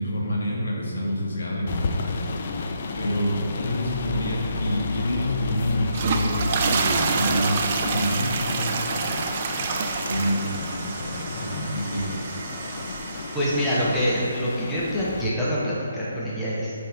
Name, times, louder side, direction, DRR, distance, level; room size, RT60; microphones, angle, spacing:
voice 1, 0.0-2.2 3.0-9.3 9.5-9.6 10.0-12.2, equal, 85° left, -2 dB, 1.4 m, -28 dB
sound 1, 1.7-15.3, left 3 dB, 40° left, 0.4 m, -32 dB
sound 2, 5.8-14.1, right 5 dB, 35° right, 0.3 m, -28 dB
sound 3, 6.8-8.6 9.2-10.2, right 3 dB, 60° right, 0.7 m, -40 dB
voice 2, 13.3-16.7, equal, 5° left, -8 dB, 0.8 m, -25 dB
7.4 x 3.5 x 3.7 m, 2.5 s
hypercardioid pair, 165°, 0 cm